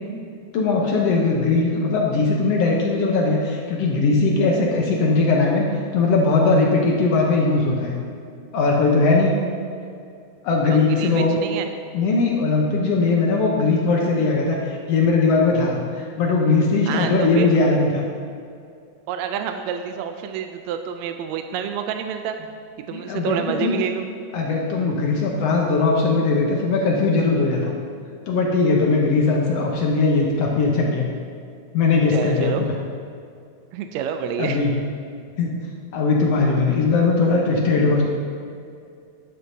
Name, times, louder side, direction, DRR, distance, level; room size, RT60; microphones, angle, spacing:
voice 1, 0.5-5.7 5.9-8.0 8.5-9.4 10.4-11.4 11.9-18.0 22.9-23.8 24.3-27.7 28.3-31.1 31.7-32.7 34.4-34.8 35.4-35.5 35.9-38.0, left 3 dB, 65° left, -1 dB, 1.8 m, -19 dB
voice 2, 10.7-11.7 16.9-17.5 19.1-22.4 22.9-24.1 32.1-32.6 33.7-34.6, right 8 dB, 80° right, 6 dB, 1.7 m, -28 dB
11.5 x 9.7 x 2.7 m, 2.4 s
omnidirectional pair, 3.4 m